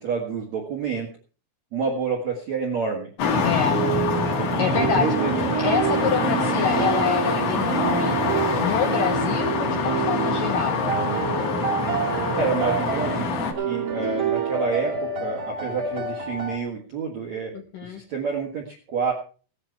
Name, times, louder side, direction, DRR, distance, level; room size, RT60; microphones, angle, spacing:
voice 1, 0.0-1.1 1.7-3.1 4.4-5.3 12.3-17.5 17.9-19.1, right 5 dB, 65° right, 1 dB, 1.7 m, -28 dB
sound 1, 3.2-13.5, left 4 dB, 55° left, 3.4 m, -25 dB
voice 2, 3.4-3.8 4.6-5.1 5.6-10.8 17.5-18.0, left 7 dB, 80° left, 5 dB, 1.9 m, -27 dB
sound 2, 3.6-16.6, right 7 dB, 40° right, 1.2 m, -28 dB
16.5 x 10.5 x 4.6 m, 0.39 s
omnidirectional pair, 5.7 m